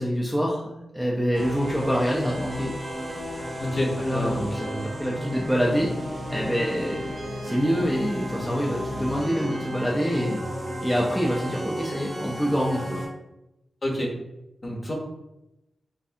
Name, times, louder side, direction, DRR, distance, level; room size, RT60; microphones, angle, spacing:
voice 1, 0.0-2.7 4.0-4.6 5.0-5.9 6.3-7.1 7.4-10.4 10.8-13.0, equal, ahead, -4 dB, 0.4 m, -26 dB
sound 1, 1.3-13.1, equal, 30° right, 0.7 m, -33 dB
voice 2, 3.6-4.8 13.8-14.1 14.6-14.9, equal, 30° left, -1 dB, 0.7 m, -29 dB
3.2 x 2.5 x 2.6 m, 0.91 s
wide cardioid pair, 145°, 0 cm